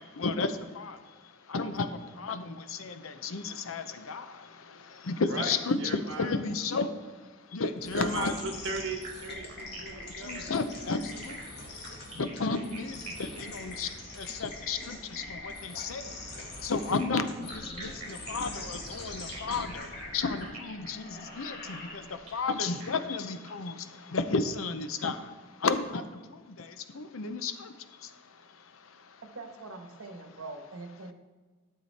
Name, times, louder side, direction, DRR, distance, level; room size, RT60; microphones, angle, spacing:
voice 1, 0.0-8.4 10.1-11.8 12.1-29.2, left 4 dB, 75° left, 10 dB, 0.7 m, -33 dB
voice 2, 5.2-6.3 7.9-10.5, right 3 dB, 60° right, 3 dB, 1.5 m, -37 dB
sound 1, 7.8-22.4, left 2 dB, 50° left, 1.7 m, -43 dB
sound 2, 8.8-15.6 16.8-23.5, right 4 dB, 35° right, 3.2 m, -48 dB
voice 3, 29.2-31.1, right 3 dB, 80° right, 5 dB, 1.2 m, -43 dB
12.5 x 6.8 x 4.2 m, 1.4 s
head